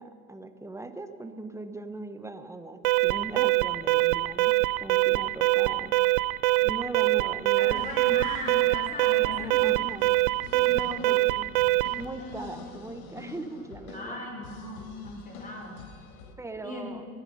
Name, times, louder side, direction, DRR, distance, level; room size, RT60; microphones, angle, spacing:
voice 1, 0.0-5.9 6.6-7.9 9.2-10.1 10.5-11.5 12.0-14.2 16.4-17.1, right 2 dB, 5° right, 9 dB, 1.0 m, -39 dB
Alarm, 2.8-12.1, right 22 dB, 75° right, 0.6 m, -24 dB
voice 2, 7.6-10.1 10.6-11.2 12.2-12.5 13.9-15.8 16.6-16.9, left 2 dB, 20° left, 0 dB, 4.2 m, -38 dB
sound 1, 7.7-16.3, left 5 dB, 85° left, 1.6 m, -47 dB
22.0 x 10.0 x 5.5 m, 2.6 s
supercardioid pair, 100°, 42 cm